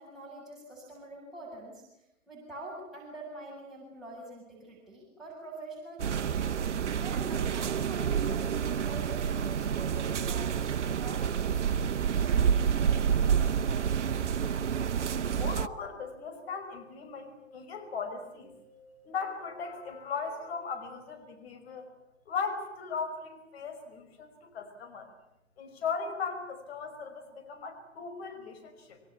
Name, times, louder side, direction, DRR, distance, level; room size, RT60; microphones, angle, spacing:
voice 1, 0.0-1.8 2.3-6.5 7.0-13.6, right 2 dB, ahead, -7 dB, 7.6 m, -45 dB
sound 1, 6.0-15.7, right 7 dB, 65° right, 1.1 m, -28 dB
voice 2, 15.2-18.5 19.0-21.9 22.3-25.1 25.6-29.0, left 5 dB, 50° left, 5 dB, 5.7 m, -38 dB
sound 2, 15.7-21.2, left 1 dB, 80° left, 7.1 m, -57 dB
26.5 x 23.5 x 8.5 m, 0.85 s
figure-of-eight pair, 125°, 38 cm